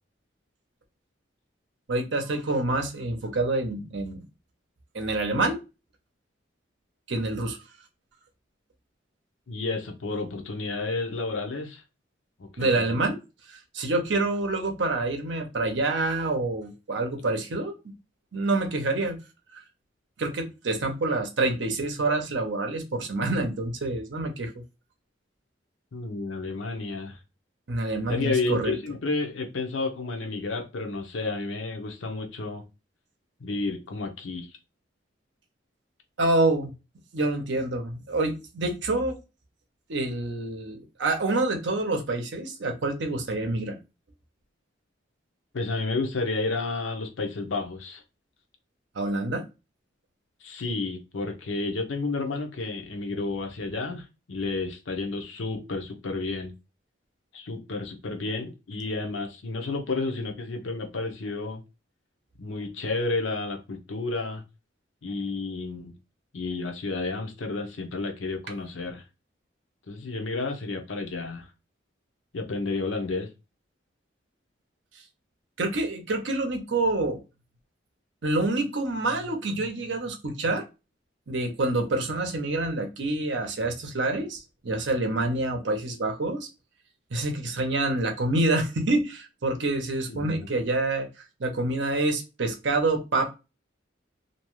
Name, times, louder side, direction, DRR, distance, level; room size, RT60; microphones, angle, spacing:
voice 1, 1.9-4.2 4.9-5.6 7.1-7.6 12.6-13.2 13.5-17.7 18.3-19.2 20.2-24.5 27.7-28.7 36.2-36.7 37.1-39.2 39.9-43.8 48.9-49.4 75.6-77.2 78.2-80.6 81.3-86.5 87.1-91.1 91.4-93.3, right 2 dB, 70° right, 0.7 m, -27 dB
voice 2, 9.5-11.8 12.4-12.8 25.9-27.2 28.1-32.6 33.4-34.5 45.5-48.0 50.4-56.5 57.3-61.6 62.4-64.4 65.0-65.9 66.3-69.0 69.9-71.5 72.3-73.3 90.1-90.5, left 3 dB, 80° left, 0.7 m, -31 dB
2.6 x 2.2 x 3.0 m
head